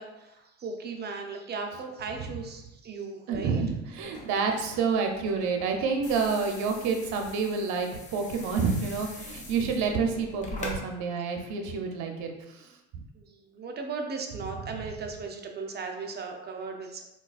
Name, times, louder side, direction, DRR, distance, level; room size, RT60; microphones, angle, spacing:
voice 1, 0.0-3.6 13.1-17.0, right 4 dB, 35° right, 3 dB, 0.5 m, -37 dB
voice 2, 3.3-12.7 12.9-13.0, right 5 dB, 75° right, 4 dB, 0.6 m, -28 dB
sound 1, 3.9-10.8, left 2 dB, 25° left, 0.7 m, -43 dB
3.8 x 2.3 x 2.4 m, 0.91 s
cardioid pair, 95°, 29 cm